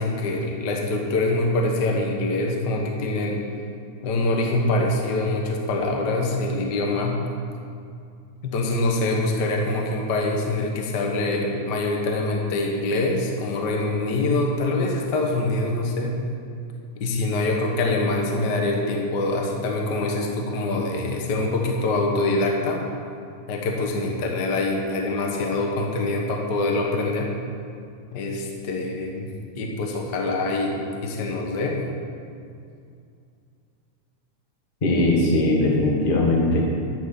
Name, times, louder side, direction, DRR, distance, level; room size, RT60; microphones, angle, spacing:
voice 1, 0.0-3.4 4.0-7.2 8.4-16.1 17.0-22.8 23.5-27.3 28.1-29.3 29.6-31.8, left 2 dB, 55° left, 0 dB, 1.3 m, -24 dB
voice 2, 34.8-36.6, left 2 dB, 25° left, -2 dB, 1.1 m, -20 dB
11.5 x 6.3 x 7.1 m, 2.4 s
omnidirectional pair, 3.4 m